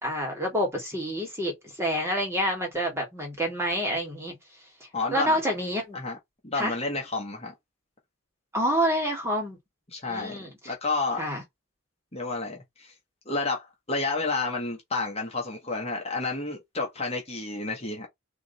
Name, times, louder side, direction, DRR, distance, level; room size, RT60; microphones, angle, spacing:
voice 1, 0.0-4.3 5.1-6.0 6.5-6.7 8.5-9.6 10.1-10.7 11.2-11.4, equal, 10° right, 2.1 m, -28 dB
voice 2, 4.9-5.3 5.9-6.2 6.4-7.5 9.9-11.2 12.1-12.9 13.3-18.1, left 3 dB, 30° left, 1.3 m, -30 dB
3.6 x 3.1 x 4.1 m
head